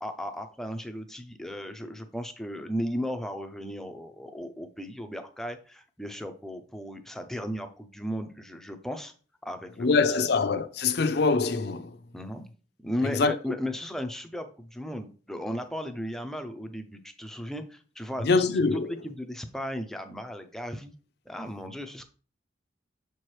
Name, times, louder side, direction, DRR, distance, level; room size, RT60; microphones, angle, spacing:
voice 1, 0.0-9.1 9.4-10.3 12.1-12.4 12.8-18.4 18.7-20.9 21.3-22.0, equal, ahead, 0.5 m, -36 dB
voice 2, 9.8-12.0 13.0-13.4 18.2-18.9, left 4 dB, 60° left, 0.5 m, -24 dB
6.7 x 4.5 x 3.2 m
head